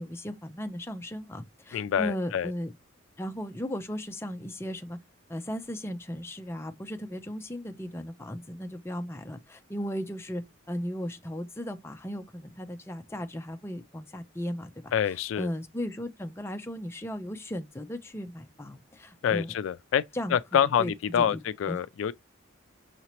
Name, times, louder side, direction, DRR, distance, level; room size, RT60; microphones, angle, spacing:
voice 1, 0.0-2.7 3.2-5.0 5.3-19.5 20.1-21.8, equal, 15° left, 0.5 m, -36 dB
voice 2, 1.7-2.5 14.9-15.5 19.2-20.0 20.3-22.1, left 8 dB, 80° left, 0.3 m, -26 dB
5.7 x 2.8 x 2.9 m
head